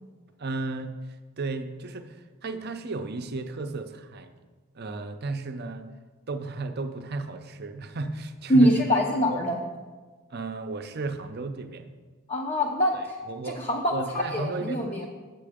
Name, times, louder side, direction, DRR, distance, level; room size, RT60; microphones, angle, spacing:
voice 1, 0.4-0.9 1.4-4.3 4.7-5.9 6.3-8.8 9.3-9.4 10.3-11.9 12.9-13.6 13.9-15.1, right 3 dB, 45° right, 7 dB, 0.6 m, -34 dB
voice 2, 8.5-9.6 12.3-13.2 13.6-14.0 14.3-15.1, equal, 25° left, -1 dB, 0.7 m, -23 dB
7.6 x 7.6 x 5.0 m, 1.4 s
head